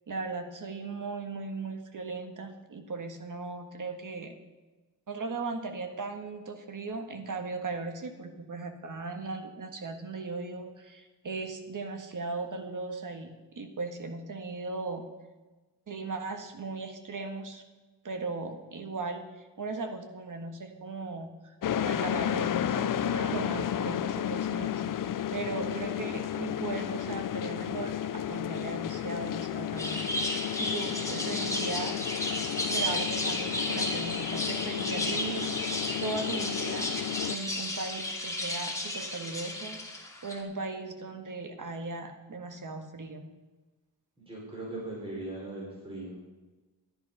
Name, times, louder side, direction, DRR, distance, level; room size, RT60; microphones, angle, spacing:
voice 1, 0.1-4.3 5.1-15.0 15.9-17.6 18.0-32.1 32.7-35.5 36.0-37.0 37.2-43.3, right 3 dB, 50° right, 5 dB, 1.6 m, -38 dB
sound 1, 21.6-37.4, left 10 dB, 55° left, 0.6 m, -32 dB
sound 2, 29.8-40.4, left 1 dB, 10° left, 2.5 m, -33 dB
voice 2, 44.2-46.3, right 2 dB, 15° right, -4 dB, 5.1 m, -39 dB
13.5 x 10.5 x 5.6 m, 1.2 s
wide cardioid pair, 115°, 40 cm